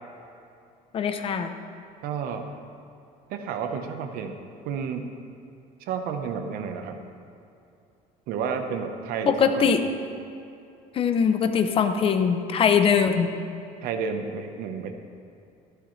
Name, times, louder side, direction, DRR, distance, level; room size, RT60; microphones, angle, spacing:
voice 1, 0.9-1.5 9.3-9.8 10.9-13.3, left 6 dB, 35° left, 8 dB, 0.7 m, -22 dB
voice 2, 2.0-2.5 3.3-4.4 4.6-5.1 5.9-7.0 8.3-9.7 13.8-14.9, right 6 dB, 70° right, 6 dB, 1.0 m, -31 dB
13.5 x 12.5 x 3.2 m, 2.6 s
cardioid pair, 155°, 16 cm